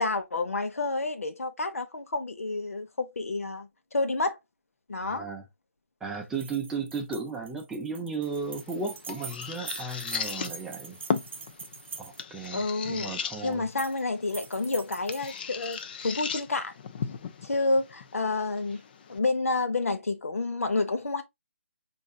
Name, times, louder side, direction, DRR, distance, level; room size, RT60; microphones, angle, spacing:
voice 1, 0.0-4.4 4.9-5.3 12.5-13.1 13.4-16.7 17.4-18.8 19.1-21.2, left 3 dB, 85° left, 0.9 m, -29 dB
voice 2, 5.0-5.4 6.0-11.0 12.0-13.7, right 4 dB, 5° right, 0.5 m, -35 dB
sound 1, 6.3-12.5 13.5-14.0 14.3-15.8, right 5 dB, 55° right, 0.6 m, -43 dB
sound 2, 8.2-19.2, left 6 dB, 40° left, 0.5 m, -37 dB
5.1 x 2.6 x 2.3 m
hypercardioid pair, 155°, 7 cm